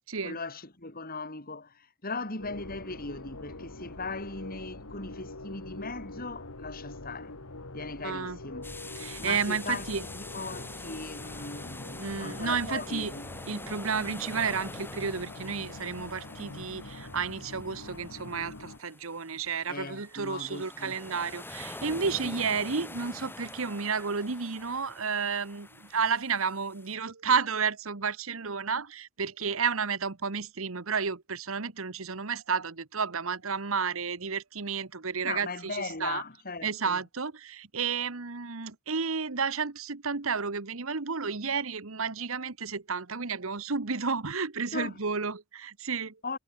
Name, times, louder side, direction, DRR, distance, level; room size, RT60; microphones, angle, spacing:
voice 1, 0.2-7.3 7.7-8.7 9.2-9.9 10.1-13.3 19.7-21.0 22.2-22.3 35.2-37.0 44.7-45.0 46.2-46.4, left 3 dB, 45° left, 5.3 m, -38 dB
sound 1, 2.4-18.8, left 2 dB, 80° left, 2.4 m, -44 dB
voice 2, 8.0-8.4 9.0-10.0 12.0-13.1 13.5-36.2 36.6-46.2, right 5 dB, 70° right, 1.3 m, -31 dB
sound 2, 8.6-26.9, left 2 dB, 10° left, 4.6 m, -45 dB
head